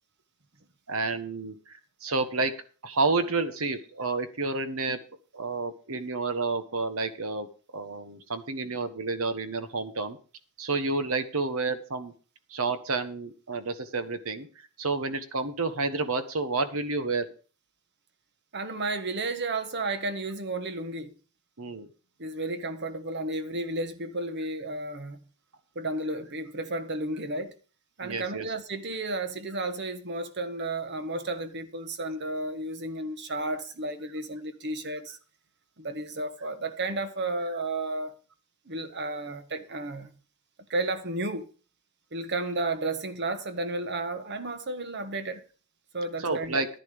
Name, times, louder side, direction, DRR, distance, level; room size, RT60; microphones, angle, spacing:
voice 1, 0.9-2.5 2.8-5.0 5.3-7.5 7.7-10.2 10.6-12.1 12.5-14.5 14.8-17.2 21.6-21.9 28.0-28.5 46.2-46.7, right 3 dB, 75° right, 1.5 m, -30 dB
voice 2, 18.5-21.1 22.2-25.2 25.7-27.5 28.0-35.2 35.8-38.1 38.7-40.1 40.7-41.5 42.1-45.4 45.9-46.6, right 2 dB, 55° right, 1.3 m, -32 dB
10.5 x 10.0 x 5.0 m
head